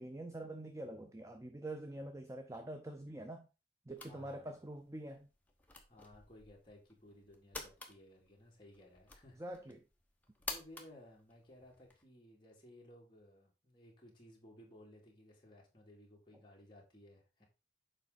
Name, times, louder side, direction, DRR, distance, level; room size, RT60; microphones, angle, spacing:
voice 1, 0.0-3.5 3.9-5.3 9.4-9.8, right 1 dB, 15° right, 0.5 m, -45 dB
voice 2, 4.0-4.6 5.9-9.4 10.4-17.5, left 1 dB, 25° left, 2.4 m, -59 dB
sound 1, 4.0-12.0, left 3 dB, 10° left, 1.1 m, -51 dB
7.3 x 5.1 x 3.9 m
head